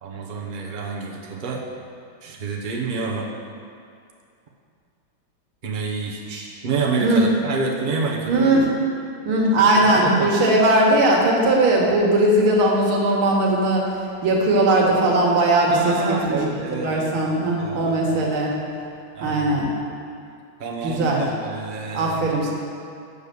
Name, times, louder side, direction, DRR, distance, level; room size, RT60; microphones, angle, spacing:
voice 1, 0.0-1.6 2.2-3.3 5.6-6.2 6.6-8.3 9.7-10.3 15.7-18.3 19.1-19.7 20.6-22.2, right 4 dB, 55° right, -2 dB, 0.5 m, -28 dB
voice 2, 8.3-8.7 9.3-13.8 14.2-15.9 16.2-16.4 16.7-18.5 19.2-19.7 20.8-21.2 21.9-22.5, right 1 dB, 75° right, -3 dB, 2.1 m, -19 dB
8.3 x 5.4 x 6.8 m, 2.4 s
omnidirectional pair, 2.3 m